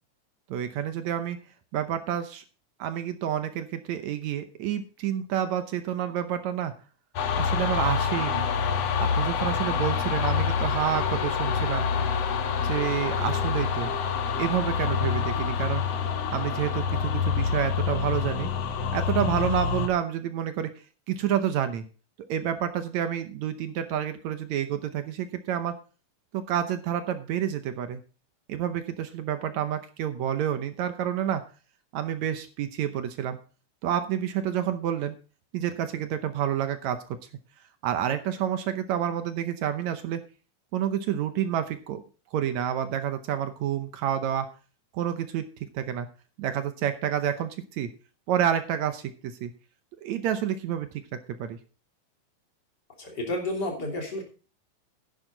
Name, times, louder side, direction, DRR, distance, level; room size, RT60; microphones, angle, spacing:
voice 1, 0.5-1.4 1.7-2.4 2.8-6.7 7.4-8.5 9.0-11.9 12.6-13.9 14.4-15.8 16.3-18.5 18.9-20.7 21.1-21.8 22.3-25.7 26.3-28.0 28.5-31.4 31.9-33.4 33.8-35.1 35.5-37.2 37.8-40.2 40.7-42.0 42.3-44.5 44.9-45.5 45.7-46.1 46.4-47.9 48.3-49.5 50.0-51.6, right 10 dB, 70° right, 9 dB, 1.9 m, -29 dB
sound 1, 7.2-19.9, left 6 dB, 60° left, 2.2 m, -27 dB
voice 2, 53.0-54.2, left 1 dB, 30° left, 0 dB, 3.4 m, -31 dB
11.0 x 10.5 x 3.9 m, 0.36 s
omnidirectional pair, 3.8 m